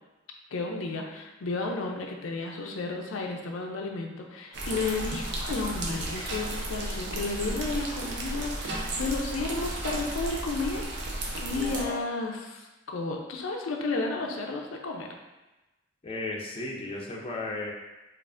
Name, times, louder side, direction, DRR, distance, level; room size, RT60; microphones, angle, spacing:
voice 1, 0.5-10.9 11.4-15.1, left 3 dB, 85° left, 1 dB, 0.5 m, -32 dB
sound 1, 4.5-11.9, right 1 dB, 60° right, 0.6 m, -33 dB
voice 2, 11.4-12.0 16.0-17.7, left 2 dB, 30° left, -2 dB, 0.5 m, -35 dB
4.6 x 2.5 x 2.4 m, 1.1 s
head